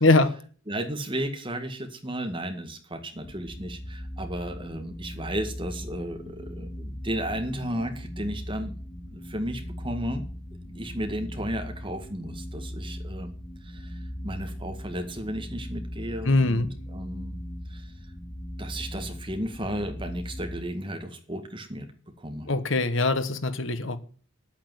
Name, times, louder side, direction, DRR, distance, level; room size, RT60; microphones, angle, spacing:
voice 1, 0.0-0.4 16.2-16.7 22.5-24.0, left 2 dB, 65° left, 1.2 m, -22 dB
voice 2, 0.7-8.8 9.1-10.3 10.7-13.3 13.6-17.4 17.7-17.9 18.6-21.9 22.2-22.5, right 1 dB, 25° right, 1.9 m, -34 dB
sound 1, 3.2-20.6, equal, 25° left, 2.5 m, -39 dB
10.0 x 8.8 x 8.0 m
head